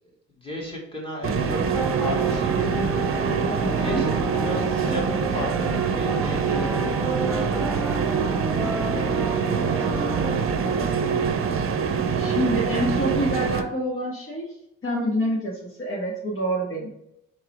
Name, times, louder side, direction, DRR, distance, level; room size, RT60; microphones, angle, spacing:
voice 1, 0.4-2.9 3.8-9.4 9.8-11.6, left 1 dB, 20° left, -3 dB, 2.4 m, -36 dB
sound 1, 1.2-13.6, right 6 dB, 45° right, 0.7 m, -24 dB
sound 2, 1.7-10.4, right 2 dB, 5° right, 0.3 m, -32 dB
voice 2, 3.5-4.0 12.2-14.5 14.8-16.9, equal, 45° left, -4 dB, 1.8 m, -27 dB
4.7 x 4.5 x 5.0 m, 0.78 s
cardioid pair, 90°, 30 cm